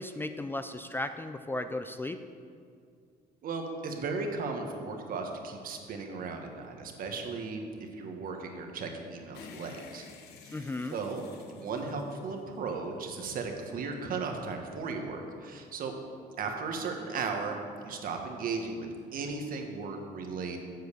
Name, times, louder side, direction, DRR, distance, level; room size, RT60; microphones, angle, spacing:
voice 1, 0.0-2.2 10.5-11.0, left 2 dB, 15° left, 9 dB, 0.4 m, -35 dB
voice 2, 3.4-7.6 7.9-10.1 10.4-15.9 16.4-20.6, right 4 dB, 55° right, 4 dB, 1.5 m, -36 dB
sound 1, 9.3-12.8, left 6 dB, 80° left, 1.0 m, -51 dB
8.0 x 7.7 x 6.8 m, 2.3 s
cardioid pair, 110°, 17 cm